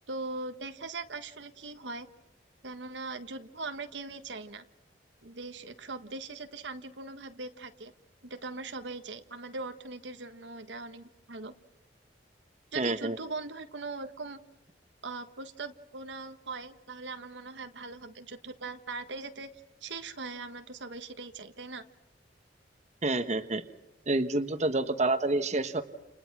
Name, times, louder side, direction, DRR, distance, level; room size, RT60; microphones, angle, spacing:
voice 1, 0.1-2.1 2.6-4.6 5.2-7.9 8.2-11.5 12.7-14.4 15.0-19.5 19.8-21.8, right 3 dB, 85° right, 8 dB, 1.5 m, -40 dB
voice 2, 12.7-13.2 23.0-23.6 24.1-25.8, right 2 dB, 40° right, 8 dB, 1.3 m, -28 dB
29.5 x 29.5 x 6.2 m, 0.95 s
head